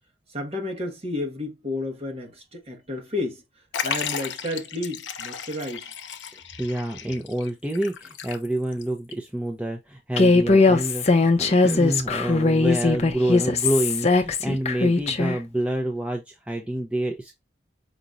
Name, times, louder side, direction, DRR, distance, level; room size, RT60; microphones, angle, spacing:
voice 1, 0.3-3.4 3.8-5.9, left 2 dB, 35° right, 1.4 m, -31 dB
Liquid, 3.7-8.8 9.1-9.2 10.2-10.3, left 7 dB, 90° left, 0.6 m, -34 dB
voice 2, 6.3-17.3, right 1 dB, 5° right, 0.6 m, -28 dB
Human voice, 10.2-15.4, left 3 dB, 35° left, 0.6 m, -20 dB
5.1 x 2.9 x 2.5 m
head